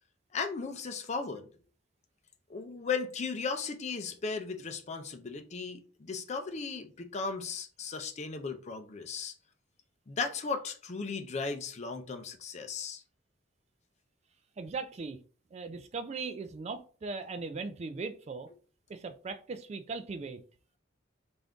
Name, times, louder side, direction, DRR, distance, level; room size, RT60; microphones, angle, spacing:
voice 1, 0.3-1.5 2.5-9.3 10.1-13.0, left 4 dB, 40° left, 0.5 m, -36 dB
voice 2, 14.6-15.2 15.5-18.5 18.9-20.4, right 4 dB, 35° right, 0.3 m, -39 dB
3.4 x 2.5 x 3.6 m
head